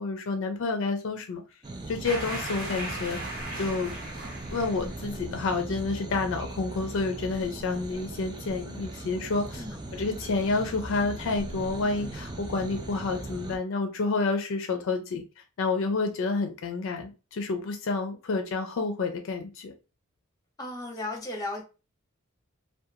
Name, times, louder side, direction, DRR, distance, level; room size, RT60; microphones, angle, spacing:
voice 1, 0.0-1.4 1.9-3.9 4.5-9.6 9.9-15.2 15.6-19.7, left 3 dB, 65° left, 5 dB, 0.4 m, -29 dB
sound 1, 1.6-13.6, right 2 dB, 20° right, 0.3 m, -39 dB
sound 2, 2.0-5.0, right 1 dB, 70° right, 1.3 m, -37 dB
voice 2, 20.6-21.6, left 2 dB, 15° left, 1 dB, 0.7 m, -35 dB
2.4 x 2.2 x 2.7 m, 0.31 s
head